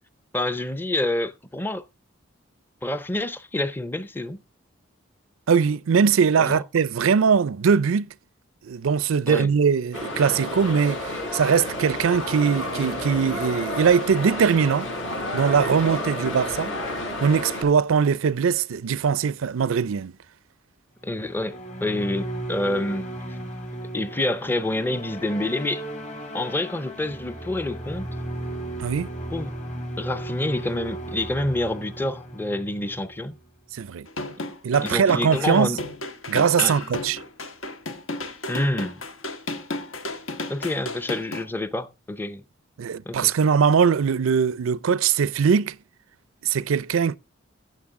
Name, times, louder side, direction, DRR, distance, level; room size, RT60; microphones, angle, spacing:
voice 1, 0.3-1.8 2.8-4.4 6.4-6.6 9.3-9.5 21.0-23.4 23.9-25.8 26.3-28.1 29.3-29.5 30.0-33.3 34.4-34.5 34.8-35.8 36.6-36.7 38.5-39.0 40.5-42.4 43.1-43.3, left 1 dB, 10° left, 0.5 m, -27 dB
voice 2, 5.5-8.1 8.6-14.9 15.3-20.1 28.8-29.1 33.7-34.1 34.6-35.7 36.3-37.2 42.8-45.8 46.4-47.2, right 6 dB, 90° right, 0.4 m, -21 dB
sound 1, 9.9-17.6, left 1 dB, 65° left, 7.0 m, -30 dB
sound 2, 21.0-33.5, right 1 dB, 35° left, 2.0 m, -36 dB
sound 3, 34.1-41.4, left 2 dB, 85° left, 1.4 m, -33 dB
15.5 x 6.6 x 3.6 m
head